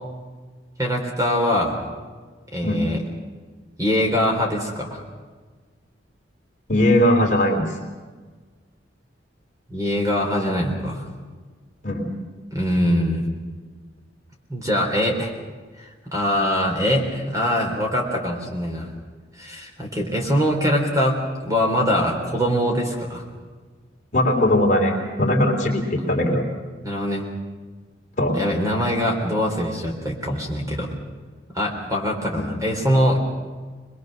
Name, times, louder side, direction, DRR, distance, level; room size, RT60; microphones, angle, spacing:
voice 1, 0.8-1.8 2.5-3.0 3.8-5.0 9.7-11.0 12.5-13.2 14.5-15.3 15.8-18.9 19.4-23.2 26.8-27.2 28.3-30.9 31.5-33.2, equal, 20° right, 1 dB, 3.4 m, -23 dB
voice 2, 6.7-7.6 11.8-12.1 24.1-26.4 28.2-28.4 32.3-32.6, left 1 dB, 40° left, -1 dB, 3.5 m, -20 dB
23.5 x 21.0 x 6.5 m, 1.4 s
head